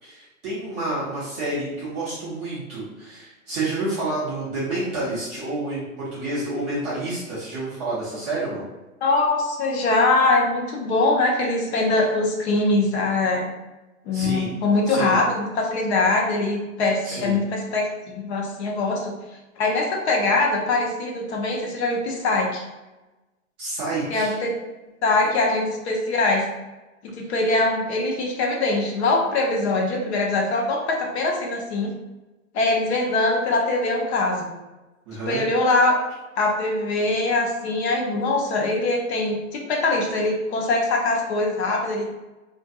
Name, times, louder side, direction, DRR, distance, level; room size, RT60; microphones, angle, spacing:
voice 1, 0.0-8.6 14.1-14.5 14.9-15.2 17.0-17.4 23.6-24.3 35.1-35.4, right 2 dB, 15° right, -9 dB, 0.4 m, -29 dB
voice 2, 9.0-13.5 14.1-19.1 19.6-22.6 24.1-24.5 25.0-26.4 27.0-31.9 32.5-34.5 35.3-36.0 36.4-42.0, left 2 dB, 55° left, 0 dB, 0.7 m, -22 dB
2.5 x 2.5 x 2.3 m, 1.1 s
hypercardioid pair, 125°, 41 cm